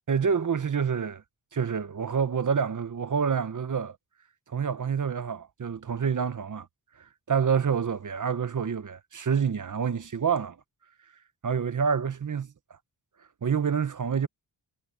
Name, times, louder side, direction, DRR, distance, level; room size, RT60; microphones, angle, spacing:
voice 1, 0.1-1.2 1.5-4.0 4.5-6.7 7.3-10.6 11.4-12.5 13.4-14.3, right 6 dB, 40° right, 0.9 m, -27 dB
wide cardioid pair, 125°, 45 cm